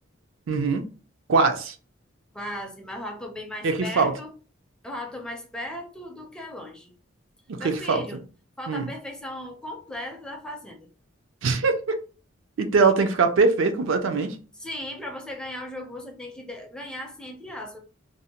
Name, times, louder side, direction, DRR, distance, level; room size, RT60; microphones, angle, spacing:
voice 1, 0.5-0.9 1.3-1.7 3.6-4.1 7.5-8.0 8.7-8.9 11.4-12.0 12.6-14.4, right 4 dB, 75° right, 6 dB, 0.4 m, -22 dB
voice 2, 2.3-4.3 4.8-6.9 7.6-8.2 8.6-10.9 14.6-17.8, left 1 dB, 5° left, 1 dB, 0.4 m, -37 dB
2.6 x 2.0 x 2.8 m, 0.36 s
head